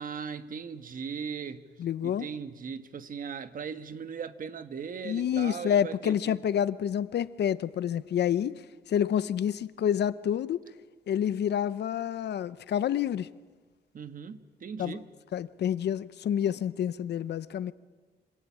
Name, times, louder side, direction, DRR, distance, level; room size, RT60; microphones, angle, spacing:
voice 1, 0.0-1.7 2.0-6.4 13.9-15.1, right 6 dB, 55° right, 1.5 m, -38 dB
voice 2, 1.8-2.3 5.0-8.6 8.9-10.6 11.1-13.3 14.8-15.0 15.3-17.7, left 9 dB, 85° left, 0.8 m, -28 dB
26.5 x 25.5 x 8.6 m
wide cardioid pair, 145°, 17 cm